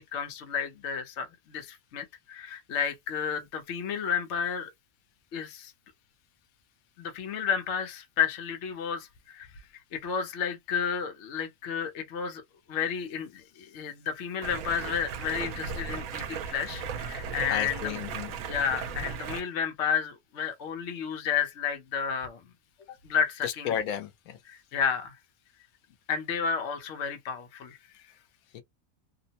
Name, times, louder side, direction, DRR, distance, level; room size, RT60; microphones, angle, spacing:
voice 1, 0.0-4.7 5.3-5.7 7.0-9.5 9.9-12.4 12.7-18.0 18.5-22.4 23.0-23.8 24.5-25.1 26.1-27.8, left 7 dB, 60° left, 1.0 m, -31 dB
Stream, 14.4-19.4, right 6 dB, 85° right, 1.0 m, -36 dB
voice 2, 17.5-18.3 23.4-24.4 28.5-28.6, left 9 dB, 90° left, 1.0 m, -33 dB
2.8 x 2.0 x 2.7 m
omnidirectional pair, 1.4 m